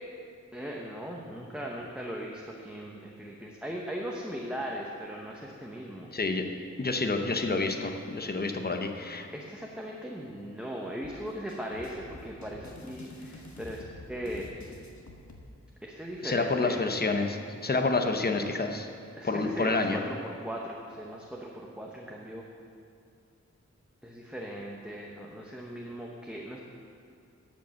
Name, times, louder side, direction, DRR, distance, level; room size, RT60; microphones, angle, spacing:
voice 1, 0.5-6.1 9.3-13.8 14.1-14.5 15.8-16.8 19.1-22.4 24.0-26.6, equal, 5° right, -2 dB, 0.9 m, -38 dB
voice 2, 6.1-6.4 6.8-9.3 16.2-17.4 17.6-18.9 19.2-20.0, left 3 dB, 35° left, 5 dB, 0.8 m, -28 dB
sound 1, 11.0-15.4, left 2 dB, 75° left, 1.2 m, -47 dB
12.0 x 5.2 x 7.0 m, 2.4 s
wide cardioid pair, 80°, 29 cm